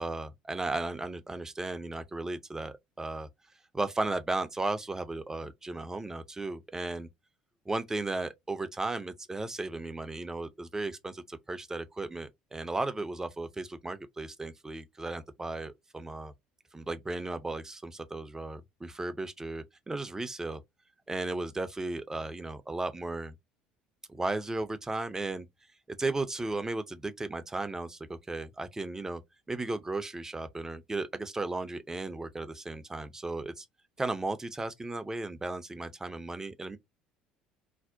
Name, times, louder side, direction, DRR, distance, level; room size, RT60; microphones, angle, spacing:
voice 1, 0.0-3.3 3.7-7.1 7.7-16.3 16.7-20.6 21.1-23.4 24.1-25.5 26.0-29.2 29.5-33.7 34.0-36.8, right 2 dB, 15° right, 0.4 m, -35 dB
2.6 x 2.0 x 2.4 m
figure-of-eight pair, 60°, 4 cm